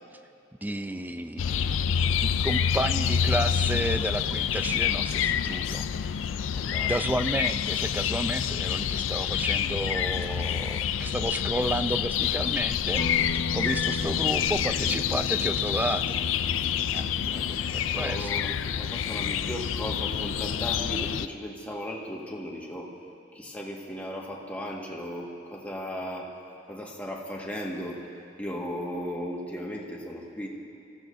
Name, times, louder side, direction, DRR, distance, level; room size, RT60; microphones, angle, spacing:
voice 1, 0.6-1.8 2.2-5.9 6.9-16.3 16.9-17.1 17.7-18.5, right 1 dB, 10° right, 9 dB, 0.5 m, -32 dB
sound 1, 1.4-21.3, left 8 dB, 90° left, 0.4 m, -27 dB
voice 2, 6.5-7.0 17.2-22.9 23.3-26.3 26.7-28.0 28.4-30.5, equal, 10° left, -3 dB, 1.7 m, -36 dB
Guitar, 13.0-20.8, left 2 dB, 70° left, 1.2 m, -38 dB
28.0 x 15.5 x 2.7 m, 2.7 s
head